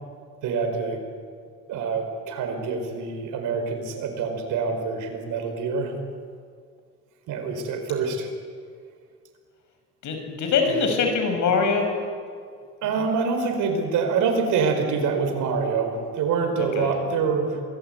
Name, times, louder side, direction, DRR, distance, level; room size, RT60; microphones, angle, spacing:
voice 1, 0.4-1.0 1.7-5.9 7.3-8.3 10.7-10.9 12.8-17.6, right 5 dB, 90° right, 5 dB, 5.0 m, -26 dB
voice 2, 10.0-11.9 16.7-16.9, left 5 dB, 75° left, 5 dB, 6.2 m, -23 dB
27.5 x 21.0 x 9.3 m, 2.1 s
cardioid pair, 90°, 30 cm